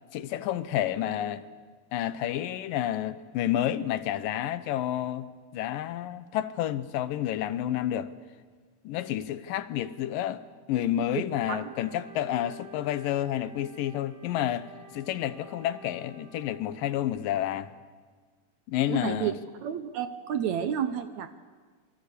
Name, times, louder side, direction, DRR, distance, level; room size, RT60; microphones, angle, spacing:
voice 1, 0.1-1.4 1.9-5.3 5.5-8.1 8.8-10.4 10.7-17.7 18.7-19.4, left 12 dB, 75° left, 2.5 m, -30 dB
Wind instrument woodwind instrument, 11.4-16.6, right 4 dB, 45° right, 7.1 m, -51 dB
voice 2, 18.9-19.3 19.6-21.3, right 9 dB, 70° right, 1.8 m, -30 dB
28.0 x 23.0 x 8.4 m
omnidirectional pair, 4.1 m